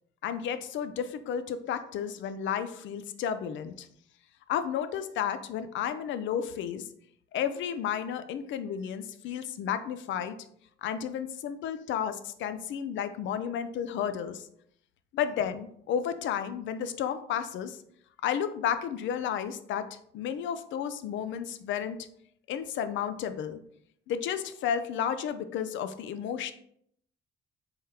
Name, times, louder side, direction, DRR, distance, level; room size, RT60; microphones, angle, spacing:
voice 1, 0.2-3.9 4.5-6.9 7.3-10.4 10.8-14.5 15.1-17.8 18.2-22.0 22.5-23.6 24.1-26.5, left 8 dB, 75° left, 11 dB, 0.4 m, -32 dB
3.5 x 3.5 x 2.8 m, 0.68 s
cardioid pair, 90°, 20 cm